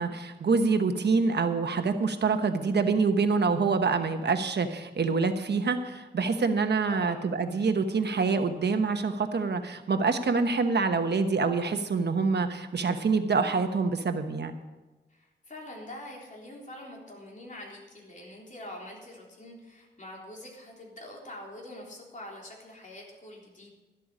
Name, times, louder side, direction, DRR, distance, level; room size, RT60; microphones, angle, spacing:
voice 1, 0.0-14.5, right 4 dB, 70° right, 7 dB, 1.1 m, -26 dB
voice 2, 6.9-7.2 15.1-23.7, left 1 dB, 45° left, -2 dB, 3.7 m, -44 dB
13.0 x 12.5 x 5.0 m, 1.2 s
wide cardioid pair, 120°, 18 cm